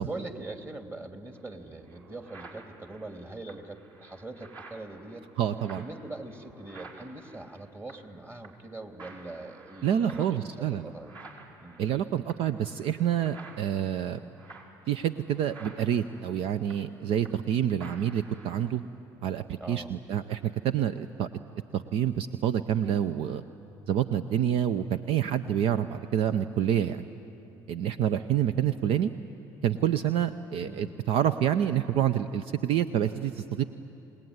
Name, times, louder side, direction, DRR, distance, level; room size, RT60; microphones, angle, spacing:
voice 1, 0.0-5.3 5.8-11.1 11.6-11.9 19.6-19.9 30.6-30.9, right 2 dB, 20° right, 5 dB, 2.8 m, -42 dB
sound 1, 1.3-1.4 1.8-8.2 8.4-8.7 9.0-17.5 17.8-18.8, right 3 dB, 45° right, 5.4 m, -51 dB
voice 2, 5.4-5.8 9.8-10.9 11.8-14.2 14.9-18.8 19.2-21.3 21.7-23.4 23.9-27.0 27.7-29.1 29.6-33.6, right 10 dB, 65° right, 12 dB, 0.7 m, -27 dB
28.0 x 19.0 x 9.6 m, 2.9 s
hypercardioid pair, 60°, 11 cm